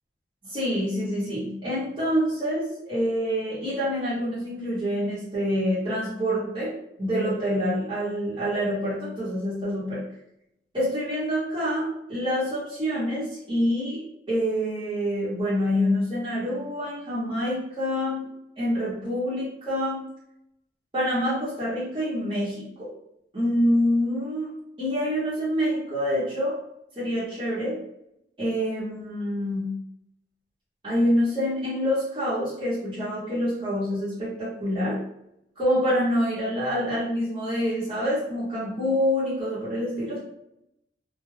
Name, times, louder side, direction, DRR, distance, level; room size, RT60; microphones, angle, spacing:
voice 1, 0.4-10.0 10.7-14.0 14.3-18.3 18.6-20.0 20.9-22.9 23.3-24.5 24.8-26.5 27.0-27.8 28.4-29.7 30.8-35.0 35.6-40.2, equal, 30° right, -11 dB, 0.9 m, -26 dB
2.2 x 2.2 x 3.2 m, 0.79 s
head